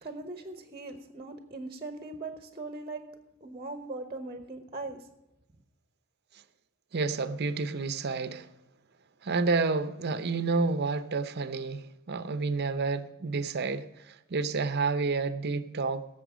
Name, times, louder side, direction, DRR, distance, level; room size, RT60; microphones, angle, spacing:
voice 1, 0.0-3.0 3.4-5.1, right 3 dB, 25° right, 1.1 m, -40 dB
voice 2, 6.9-8.5 9.2-16.1, right 4 dB, 50° right, 0.7 m, -30 dB
17.5 x 7.7 x 5.0 m
head